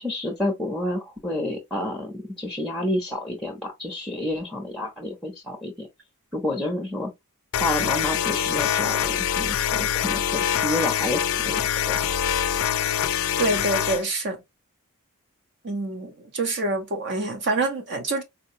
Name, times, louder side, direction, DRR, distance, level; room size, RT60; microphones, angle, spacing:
voice 1, 0.0-5.9 6.3-7.1 7.6-12.2, left 1 dB, ahead, 0.7 m, -29 dB
sound 1, 7.5-14.0, left 9 dB, 60° left, 0.3 m, -24 dB
voice 2, 13.4-14.4 15.6-18.2, right 2 dB, 50° right, 0.9 m, -26 dB
4.1 x 2.2 x 2.7 m
head